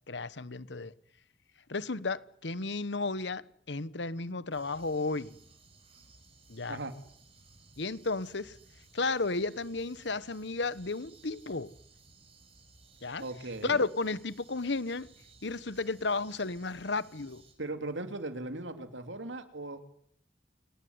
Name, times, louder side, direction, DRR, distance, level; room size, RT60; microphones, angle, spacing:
voice 1, 0.1-0.9 1.7-5.4 6.5-6.8 7.8-8.6 8.9-11.7 13.0-13.2 13.6-15.1 15.4-17.4, left 3 dB, 70° left, 1.1 m, -33 dB
sound 1, 4.5-17.5, right 3 dB, 30° right, 6.0 m, -59 dB
voice 2, 13.2-13.8 17.6-19.8, right 2 dB, 85° right, 2.9 m, -38 dB
28.0 x 19.0 x 9.6 m
head